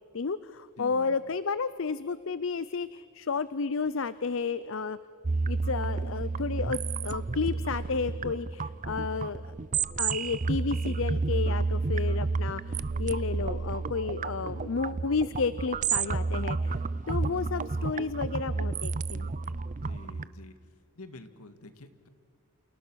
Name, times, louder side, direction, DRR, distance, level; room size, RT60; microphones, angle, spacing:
voice 1, 0.1-5.0 5.5-9.4 10.0-16.8 17.1-19.3, left 4 dB, 60° left, 16 dB, 0.5 m, -32 dB
voice 2, 0.8-1.2 19.8-20.5 20.9-22.1, left 2 dB, 80° left, 9 dB, 2.0 m, -48 dB
sound 1, 5.2-20.2, right 4 dB, 35° right, 0.5 m, -31 dB
29.5 x 28.0 x 6.4 m, 2.3 s
head